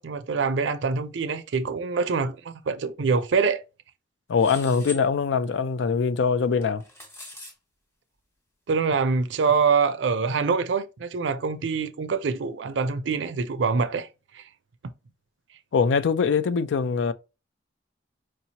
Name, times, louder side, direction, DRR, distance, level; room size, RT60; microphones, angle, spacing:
voice 1, 0.0-3.6 8.7-14.1 14.3-14.4, right 5 dB, 85° right, 0.5 m, -25 dB
voice 2, 4.3-6.8 15.7-17.1, left 5 dB, 85° left, 0.4 m, -23 dB
sound 1, 4.4-5.0 6.6-7.5, left 1 dB, 15° left, 0.9 m, -41 dB
4.6 x 2.9 x 2.8 m
head